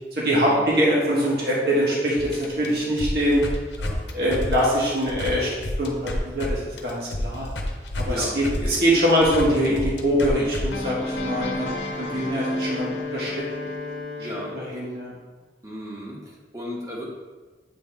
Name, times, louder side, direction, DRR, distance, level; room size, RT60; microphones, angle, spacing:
voice 1, 0.1-3.4 4.1-7.5 7.9-13.4 14.5-15.1, equal, 60° right, -6 dB, 1.6 m, -23 dB
sound 1, 2.2-6.5 6.8-14.0, left 1 dB, 90° left, 0.8 m, -31 dB
voice 2, 8.0-8.4 12.0-12.3 14.2-14.6 15.6-17.0, equal, 20° right, -3 dB, 1.1 m, -35 dB
Wind instrument woodwind instrument, 10.7-14.8, left 3 dB, 35° left, 0.6 m, -35 dB
8.1 x 3.6 x 3.4 m, 1.3 s
head